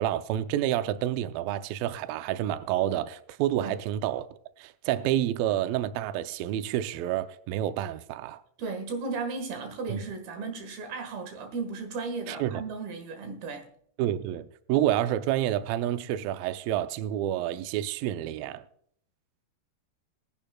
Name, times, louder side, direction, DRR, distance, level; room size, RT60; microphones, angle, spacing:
voice 1, 0.0-4.3 4.6-8.4 9.9-10.0 12.3-12.6 14.0-18.6, right 12 dB, 85° right, 2.0 m, -29 dB
voice 2, 8.6-13.7, right 4 dB, 65° right, 3.3 m, -35 dB
21.0 x 10.5 x 2.3 m
omnidirectional pair, 4.8 m